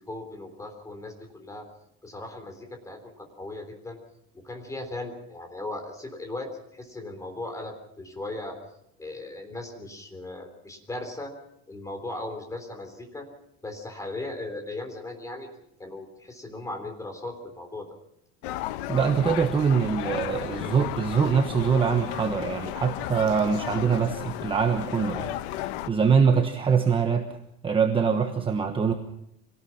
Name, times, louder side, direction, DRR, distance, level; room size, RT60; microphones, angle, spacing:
voice 1, 0.1-1.7 2.0-4.0 4.3-8.6 9.0-11.3 11.7-13.3 13.6-15.5 15.8-17.9, left 2 dB, 10° left, 5 dB, 3.6 m, -37 dB
sound 1, 18.4-25.9, left 14 dB, 80° left, 1.1 m, -34 dB
voice 2, 18.9-27.3 27.6-28.9, right 6 dB, 15° right, 5 dB, 1.2 m, -24 dB
25.0 x 18.5 x 5.9 m, 0.76 s
cardioid pair, 160°, 32 cm